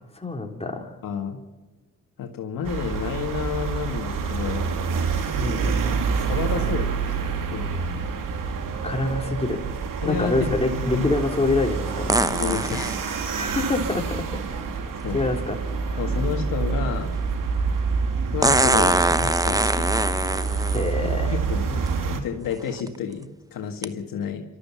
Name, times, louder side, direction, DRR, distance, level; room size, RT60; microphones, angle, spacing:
voice 1, 0.2-0.9 5.4-5.9 8.8-9.6 10.0-12.2 13.4-14.2 15.1-15.6 15.9-16.0 20.7-21.3, left 2 dB, 20° left, 2 dB, 3.9 m, -26 dB
voice 2, 1.0-1.4 2.2-4.7 6.2-7.7 10.0-11.1 12.3-13.2 15.0-15.3 16.0-17.1 18.3-20.0 21.0-24.4, left 7 dB, 80° left, 4 dB, 1.9 m, -30 dB
sound 1, 2.6-22.2, right 5 dB, 75° right, 2.3 m, -27 dB
sound 2, 12.1-13.0 15.0-15.1 18.4-20.9 21.9-22.0 22.6-22.9 23.8-23.9, right 2 dB, 10° right, 0.9 m, -22 dB
27.0 x 13.0 x 7.3 m, 1.1 s
supercardioid pair, 60°, 33 cm